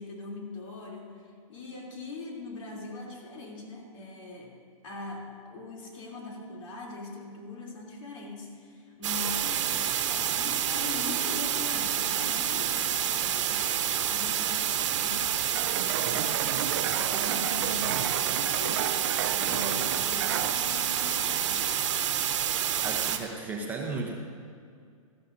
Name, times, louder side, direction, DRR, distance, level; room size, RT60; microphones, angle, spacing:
voice 1, 0.0-4.6 4.8-9.8 10.1-22.0, left 3 dB, 65° left, -1 dB, 3.2 m, -41 dB
sound 1, 9.0-23.2, right 10 dB, 60° right, 1.1 m, -28 dB
sound 2, 15.5-20.5, right 11 dB, 45° right, 0.4 m, -34 dB
voice 2, 22.8-24.2, right 3 dB, 10° right, -1 dB, 0.8 m, -34 dB
17.5 x 13.5 x 2.7 m, 2.3 s
hypercardioid pair, 155°, 18 cm